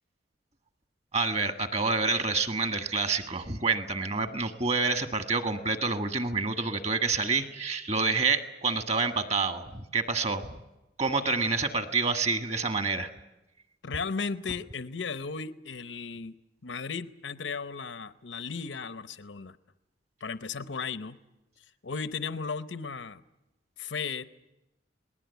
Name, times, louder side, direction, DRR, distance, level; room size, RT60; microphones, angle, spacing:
voice 1, 1.1-10.6 11.0-13.1, right 4 dB, 35° right, 9 dB, 1.6 m, -28 dB
voice 2, 13.8-16.3 16.6-19.6 20.2-21.2 21.8-23.2 23.8-24.2, left 5 dB, 85° left, 13 dB, 0.9 m, -35 dB
27.5 x 20.0 x 8.2 m, 0.96 s
head